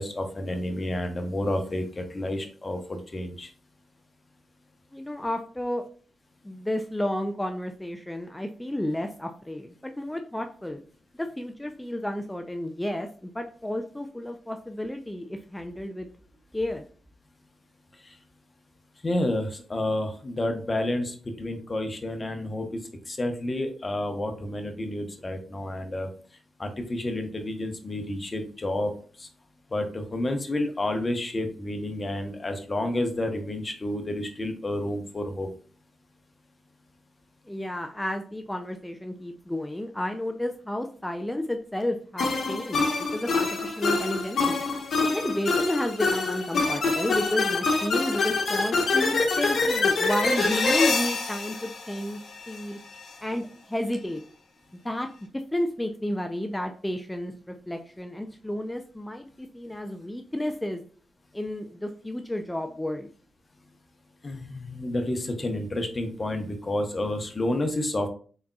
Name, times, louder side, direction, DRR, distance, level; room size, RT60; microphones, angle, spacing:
voice 1, 0.0-3.5 19.0-22.8 23.1-26.1 26.6-28.9 29.2-29.3 29.7-35.5 64.2-68.1, left 1 dB, 35° left, 5 dB, 0.9 m, -30 dB
voice 2, 4.9-5.8 6.4-10.8 11.1-16.1 16.5-16.8 37.4-44.6 45.0-52.2 52.5-52.8 53.2-54.2 54.8-55.1 55.5-60.8 61.3-63.1, left 1 dB, 10° left, 6 dB, 0.4 m, -31 dB
sound 1, 42.2-52.6, left 3 dB, 70° left, 1.0 m, -25 dB
4.1 x 3.6 x 2.3 m, 0.42 s
supercardioid pair, 50°, 0 cm